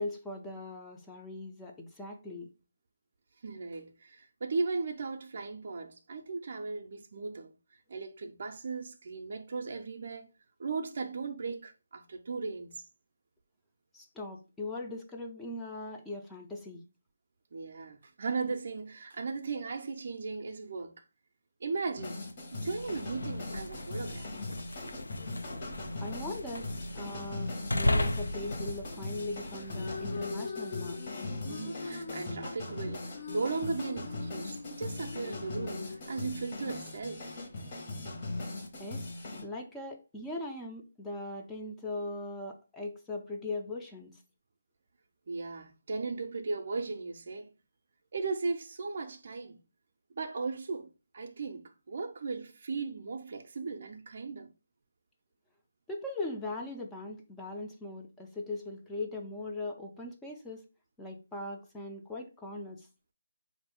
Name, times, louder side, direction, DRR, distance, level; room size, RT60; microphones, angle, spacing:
voice 1, 0.0-2.5 13.9-16.8 26.0-26.7 26.9-31.0 38.8-39.1 39.4-44.2 55.9-60.6 61.0-62.9, left 2 dB, 5° left, 0.4 m, -40 dB
voice 2, 3.4-7.5 7.9-10.3 10.6-12.9 17.5-21.0 21.6-22.2 22.5-24.3 31.5-37.4 45.3-47.5 48.1-49.6 50.2-54.5, right 4 dB, 50° right, 0.5 m, -37 dB
sound 1, 22.0-39.4, left 2 dB, 40° left, 1.1 m, -40 dB
sound 2, 22.6-30.4, left 1 dB, 85° left, 0.5 m, -36 dB
sound 3, 29.6-37.8, left 4 dB, 60° left, 0.8 m, -43 dB
4.1 x 2.5 x 3.5 m
figure-of-eight pair, 160°, 0 cm